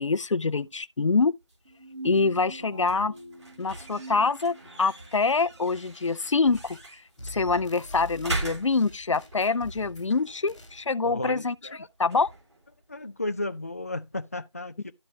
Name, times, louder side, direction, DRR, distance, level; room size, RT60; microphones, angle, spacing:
voice 1, 0.0-1.3 2.0-3.1 3.6-6.8 7.2-11.5 12.0-12.3, left 4 dB, 90° left, 0.5 m, -25 dB
sound 1, 1.4-14.2, right 2 dB, 70° right, 3.7 m, -42 dB
sound 2, 1.6-5.1, right 3 dB, 15° right, 1.0 m, -43 dB
sound 3, 6.5-6.9 7.2-10.1 10.5-10.8, left 1 dB, ahead, 0.7 m, -44 dB
voice 2, 11.0-11.9 12.9-14.9, left 2 dB, 30° left, 0.4 m, -34 dB
12.0 x 4.0 x 3.2 m
figure-of-eight pair, 170°, 15 cm